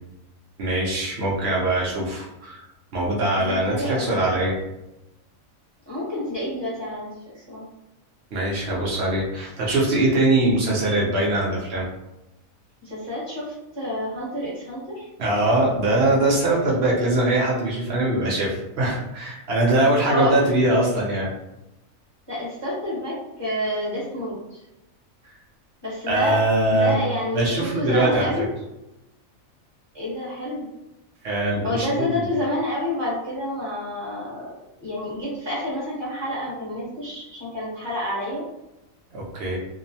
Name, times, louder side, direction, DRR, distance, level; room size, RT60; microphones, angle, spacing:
voice 1, 0.6-2.7 2.9-4.6 8.3-11.9 15.2-21.3 26.1-27.0 27.3-28.3 31.2-32.2 39.1-39.6, right 2 dB, 60° right, -4 dB, 0.8 m, -22 dB
voice 2, 3.4-4.2 5.9-7.7 12.8-15.1 20.0-20.5 22.3-24.6 25.8-26.4 26.7-28.5 29.9-30.7 31.6-38.4, left 1 dB, 20° right, -8 dB, 1.1 m, -29 dB
2.9 x 2.0 x 2.6 m, 0.94 s
omnidirectional pair, 1.4 m